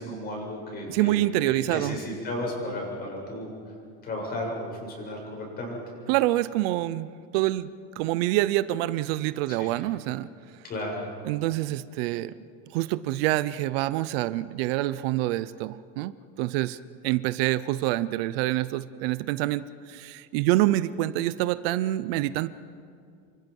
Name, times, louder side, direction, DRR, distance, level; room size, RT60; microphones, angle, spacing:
voice 1, 0.0-3.5 4.0-5.8 9.5-9.7 10.6-11.0, left 1 dB, 30° left, -1 dB, 7.9 m, -34 dB
voice 2, 0.9-2.0 6.1-7.1 7.3-10.3 11.2-12.4 12.7-16.8 17.0-22.5, right 16 dB, 70° right, 15 dB, 0.8 m, -26 dB
29.0 x 24.5 x 5.5 m, 2.3 s
cardioid pair, 160°, 31 cm